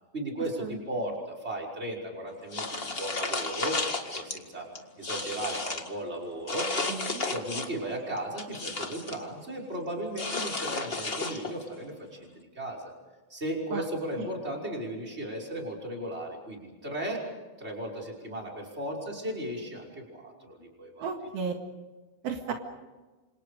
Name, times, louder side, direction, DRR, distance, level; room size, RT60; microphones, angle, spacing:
voice 1, 0.1-3.9 4.1-4.7 5.0-6.7 7.3-12.9 13.3-17.2 17.6-21.1 22.5-22.6, right 1 dB, 15° right, -1 dB, 5.7 m, -36 dB
sound 1, 2.5-4.4 4.7-5.9 6.5-7.8 8.2-9.2 10.1-11.7, left 3 dB, 50° left, 0.6 m, -33 dB
voice 2, 6.9-7.3 13.7-13.8 14.2-14.3 21.0-21.5 22.2-22.5, right 6 dB, 75° right, 3 dB, 3.7 m, -34 dB
29.0 x 26.5 x 5.1 m, 1.2 s
omnidirectional pair, 4.4 m